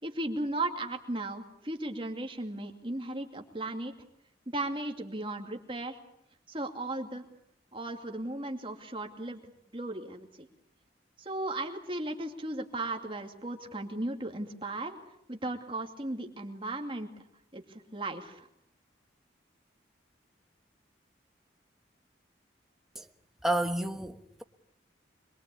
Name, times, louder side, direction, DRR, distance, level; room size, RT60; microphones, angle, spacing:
voice 1, 0.0-3.9 4.5-6.0 6.5-7.2 7.7-9.4 9.7-10.5 11.2-15.0 15.3-17.1 17.5-18.5, right 2 dB, 30° right, 2.5 m, -36 dB
voice 2, 23.4-24.4, right 1 dB, ahead, 1.2 m, -30 dB
26.0 x 22.5 x 8.5 m
head